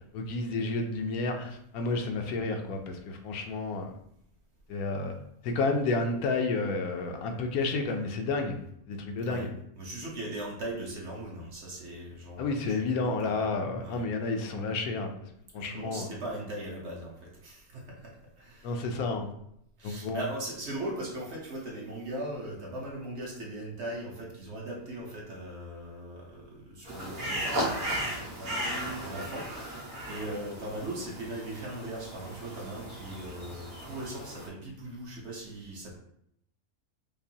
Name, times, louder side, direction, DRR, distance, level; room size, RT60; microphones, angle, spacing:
voice 1, 0.1-3.9 4.7-5.1 5.4-8.6 8.9-9.5 12.4-15.1 15.5-16.1 18.6-19.3 19.8-20.2, left 3 dB, 80° left, 4 dB, 1.0 m, -31 dB
voice 2, 9.8-13.5 13.8-14.0 15.6-18.8 19.8-36.0, right 1 dB, 55° right, -3 dB, 1.0 m, -39 dB
sound 1, 26.9-34.5, right 1 dB, 85° right, 1.7 m, -36 dB
5.2 x 2.0 x 2.7 m, 0.73 s
omnidirectional pair, 1.6 m